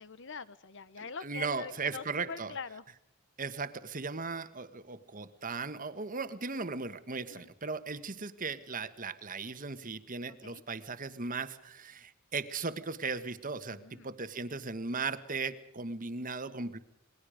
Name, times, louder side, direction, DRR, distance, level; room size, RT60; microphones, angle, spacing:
voice 1, 0.0-2.8 7.3-7.5 10.3-10.6 13.7-14.1, left 5 dB, 60° left, 16 dB, 1.1 m, -44 dB
voice 2, 1.0-2.5 3.4-16.8, right 4 dB, 40° right, 11 dB, 1.5 m, -37 dB
28.5 x 21.5 x 5.1 m, 0.74 s
head